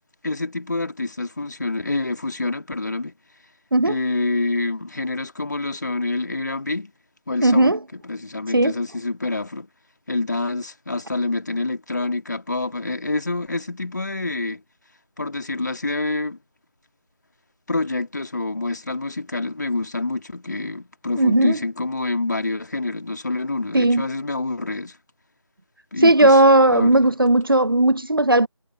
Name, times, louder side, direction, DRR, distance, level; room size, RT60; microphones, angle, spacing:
voice 1, 0.2-3.1 3.8-6.9 7.3-9.7 10.1-14.6 15.2-16.4 17.7-25.0 25.9-26.4 26.7-27.0, left 2 dB, 35° left, 2.1 m, -27 dB
voice 2, 7.4-7.8 8.5-8.7 21.2-21.6 23.7-24.1 26.0-28.5, right 1 dB, 45° right, 0.8 m, -16 dB
figure-of-eight pair, 170°, 16 cm